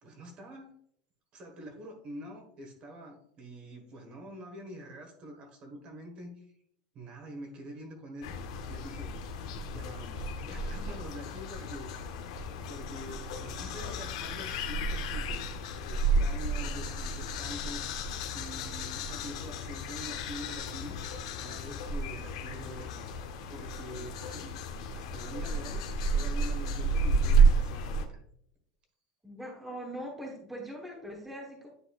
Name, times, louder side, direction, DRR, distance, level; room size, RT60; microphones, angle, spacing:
voice 1, 0.0-0.7 1.3-6.5 6.9-8.3 8.7-9.2 9.7-12.2 12.6-15.5 15.8-17.8 18.3-21.0 21.4-23.1 23.5-24.5 24.9-25.8 26.1-28.2, right 1 dB, 35° right, 4 dB, 1.3 m, -45 dB
sound 1, 8.2-28.1, right 3 dB, 90° left, 0.8 m, -31 dB
sound 2, 8.6-9.1 9.4-10.3 10.6-12.3 12.6-13.6 13.9-15.6 15.9-16.8 17.1-18.8 19.1-20.0 20.3-21.6, left 7 dB, 65° left, 1.3 m, -53 dB
voice 2, 29.2-31.7, equal, 5° right, -1 dB, 1.1 m, -41 dB
9.6 x 4.1 x 2.4 m, 0.68 s
supercardioid pair, 155°, 3 cm